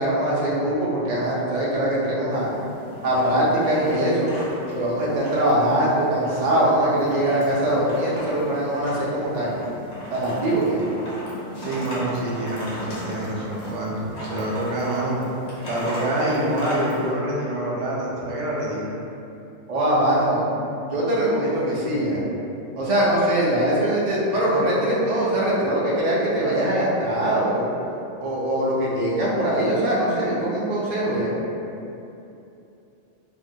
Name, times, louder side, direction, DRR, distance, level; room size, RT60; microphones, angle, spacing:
voice 1, 0.0-2.5 3.0-4.3 4.7-9.6 10.1-10.8 19.7-20.4 20.9-22.2 22.8-27.7 28.2-31.3, right 1 dB, 55° right, -7 dB, 0.4 m, -22 dB
sound 1, 2.3-17.1, equal, 65° left, 0.9 m, -37 dB
voice 2, 11.6-15.2 15.6-18.9, right 1 dB, 80° right, -4 dB, 0.9 m, -26 dB
2.7 x 2.1 x 2.6 m, 2.8 s
omnidirectional pair, 1.3 m